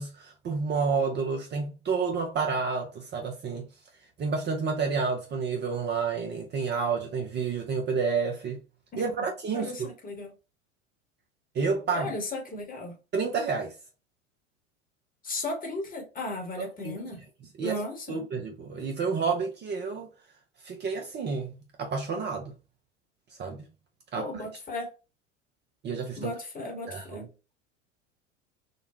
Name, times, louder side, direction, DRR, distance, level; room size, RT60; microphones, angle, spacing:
voice 1, 0.0-3.7 4.2-8.6 9.0-9.7 11.5-12.1 13.1-13.7 16.6-17.0 17.6-17.8 18.1-20.1 20.6-22.5 23.4-23.7 24.1-24.3 25.8-26.3 26.9-27.2, right 5 dB, 30° right, 0.7 m, -30 dB
voice 2, 8.9-9.3 9.5-10.3 11.9-13.0 15.2-17.2 17.6-18.2 24.2-24.9 26.1-27.3, left 2 dB, 20° left, 1.2 m, -35 dB
3.9 x 2.2 x 2.7 m
figure-of-eight pair, 80°, 38 cm